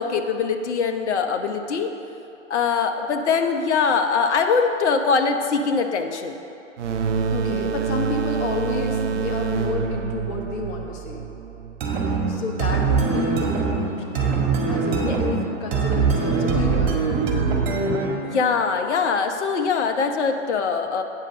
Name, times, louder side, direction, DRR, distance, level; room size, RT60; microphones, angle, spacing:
voice 1, 0.0-1.9 2.5-6.4 15.0-15.2 18.3-21.0, left 5 dB, 60° left, 6 dB, 0.9 m, -22 dB
sound 1, 6.8-12.2, right 6 dB, 70° right, 0.7 m, -27 dB
voice 2, 7.3-11.2 12.2-14.4 14.7-17.0, left 3 dB, 30° left, 0 dB, 1.3 m, -30 dB
sound 2, 11.8-18.3, right 4 dB, 50° right, 1.8 m, -22 dB
8.7 x 5.3 x 6.3 m, 2.7 s
figure-of-eight pair, 115°, 38 cm